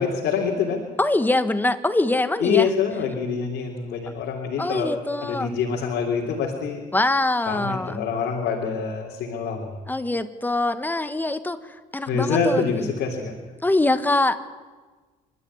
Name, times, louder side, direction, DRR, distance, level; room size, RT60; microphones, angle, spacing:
voice 1, 0.0-0.8 2.4-4.9 5.2-6.8 7.5-9.7 12.1-13.3, left 5 dB, 75° left, -1 dB, 3.5 m, -25 dB
voice 2, 1.0-2.7 4.6-5.6 6.9-8.0 9.9-12.9 13.6-14.4, left 2 dB, 10° left, 11 dB, 1.5 m, -23 dB
28.0 x 13.0 x 9.8 m, 1.4 s
cardioid pair, 110°, 17 cm